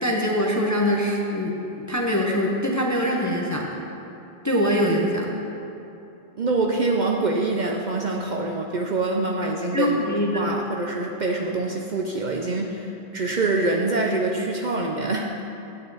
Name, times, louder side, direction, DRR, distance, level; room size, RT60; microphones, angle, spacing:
voice 1, 0.0-3.6 4.4-5.3 9.7-10.4, equal, 20° left, -2 dB, 0.7 m, -23 dB
voice 2, 6.4-15.5, right 3 dB, 50° right, 1 dB, 0.6 m, -25 dB
8.9 x 8.6 x 4.0 m, 2.8 s
omnidirectional pair, 1.1 m